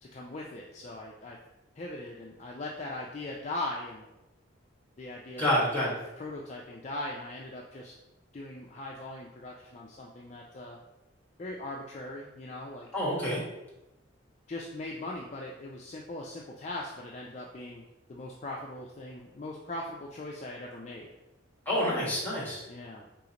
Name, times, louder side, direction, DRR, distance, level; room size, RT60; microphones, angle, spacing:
voice 1, 0.0-1.4 1.8-4.0 5.0-5.4 5.8-7.9 8.3-10.8 11.4-12.9 14.5-21.1 22.7-23.1, left 2 dB, 35° left, -2 dB, 0.4 m, -40 dB
voice 2, 5.4-5.9 12.9-13.4 21.6-22.6, equal, 10° left, -6 dB, 1.5 m, -28 dB
4.1 x 3.8 x 2.9 m, 0.95 s
head